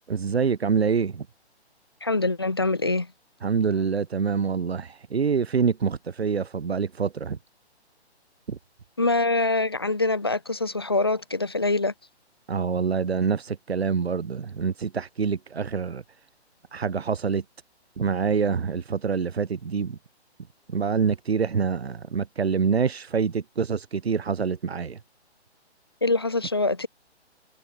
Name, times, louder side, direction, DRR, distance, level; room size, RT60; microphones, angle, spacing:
voice 1, 0.1-1.3 3.4-7.4 8.5-8.6 12.5-16.0 16.7-17.4 18.0-20.0 20.7-25.0, right 6 dB, 65° right, 3.4 m, -26 dB
voice 2, 2.0-3.1 9.0-11.9 26.0-26.9, left 3 dB, 25° left, 0.5 m, -24 dB
hypercardioid pair, 175°, 34 cm